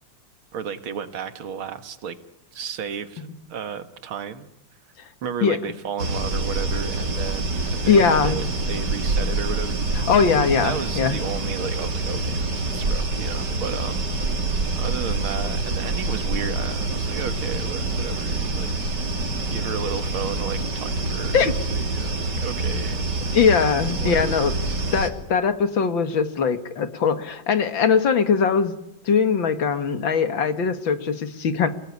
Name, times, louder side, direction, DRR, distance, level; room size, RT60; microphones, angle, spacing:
voice 1, 0.5-2.2 2.5-4.5 5.2-10.1 10.5-14.1 14.8-18.7 19.4-21.4 21.7-23.1 24.0-24.9, right 7 dB, 80° right, 10 dB, 2.4 m, -33 dB
sound 1, 6.0-25.1, right 2 dB, 55° right, 3.5 m, -26 dB
voice 2, 7.9-8.4 10.0-11.2 21.3-21.5 23.3-24.6 24.9-28.7 29.0-31.7, left 6 dB, 65° left, 10 dB, 2.5 m, -21 dB
29.5 x 19.0 x 9.8 m, 0.86 s
omnidirectional pair, 2.2 m